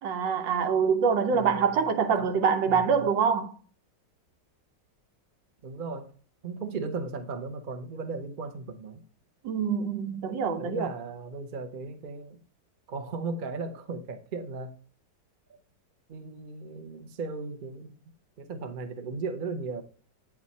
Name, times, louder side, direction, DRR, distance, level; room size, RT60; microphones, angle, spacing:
voice 1, 0.0-3.5 9.4-10.9, right 6 dB, 90° right, 1.5 m, -25 dB
voice 2, 1.3-2.3 2.6-3.0 5.6-6.1 6.4-9.0 10.6-12.4 12.9-14.7 16.1-18.0 18.4-19.8, right 4 dB, 55° right, 0.5 m, -36 dB
8.8 x 3.6 x 4.1 m
omnidirectional pair, 1.9 m